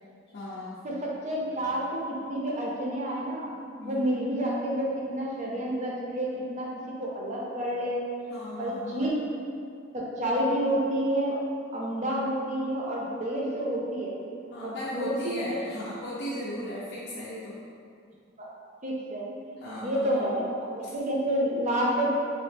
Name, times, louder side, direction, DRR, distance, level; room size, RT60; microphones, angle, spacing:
voice 1, 0.3-0.8 3.8-4.4 8.3-9.2 14.5-17.6 19.6-20.3 20.8-20.9, left 1 dB, 55° left, -8 dB, 0.4 m, -37 dB
voice 2, 0.8-3.5 3.8-6.7 7.0-8.0 8.6-9.2 9.9-11.4 11.7-14.2 14.6-15.6 18.4-18.5 18.8-22.1, right 1 dB, 35° right, -4 dB, 0.5 m, -29 dB
3.2 x 2.0 x 3.3 m, 2.4 s
head